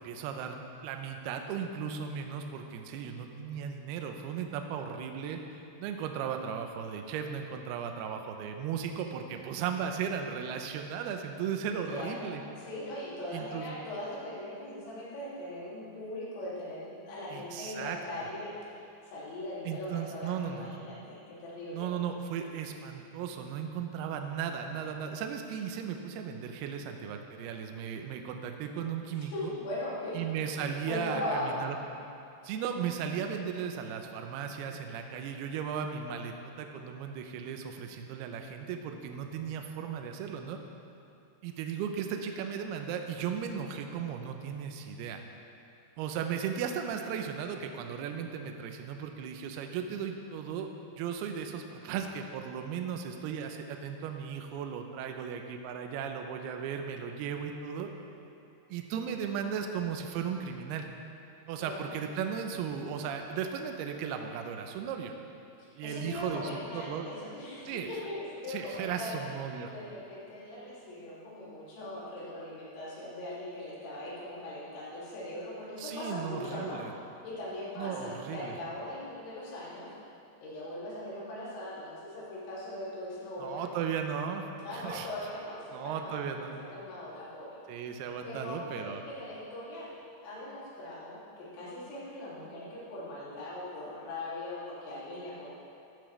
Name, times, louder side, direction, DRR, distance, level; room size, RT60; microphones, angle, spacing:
voice 1, 0.0-12.4 13.3-13.8 17.3-18.0 19.6-20.7 21.7-29.5 30.1-31.8 32.4-40.6 41.4-45.2 46.0-50.7 51.0-57.9 58.7-60.8 61.5-65.1 65.8-67.1 67.7-67.9 68.5-69.7 75.8-76.9 77.8-78.6 83.4-85.1 85.7-86.6 87.7-89.0, right 7 dB, 80° right, 4 dB, 2.4 m, -36 dB
voice 2, 11.9-18.5 19.1-21.9 29.1-31.6 61.6-61.9 65.6-69.2 69.7-76.8 77.2-79.9 80.4-83.6 84.6-86.3 86.6-87.6 88.2-89.9 90.2-95.5, left 1 dB, 80° left, -8 dB, 5.1 m, -40 dB
13.0 x 12.5 x 3.3 m, 2.8 s
omnidirectional pair, 5.2 m